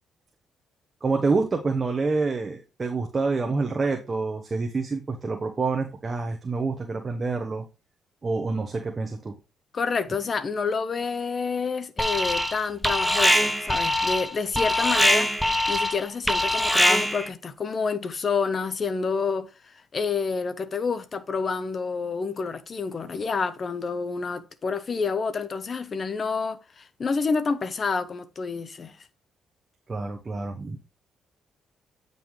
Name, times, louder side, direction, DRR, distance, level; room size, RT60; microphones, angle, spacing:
voice 1, 1.0-7.6 8.2-9.3 29.9-30.8, right 4 dB, 30° right, 1.0 m, -27 dB
voice 2, 9.7-19.5 19.9-29.0, left 5 dB, 40° left, 0.9 m, -28 dB
Alarm, 12.0-12.6 12.8-17.3, equal, ahead, 0.9 m, -23 dB
9.0 x 5.4 x 3.2 m
cardioid pair, 90°, 0 cm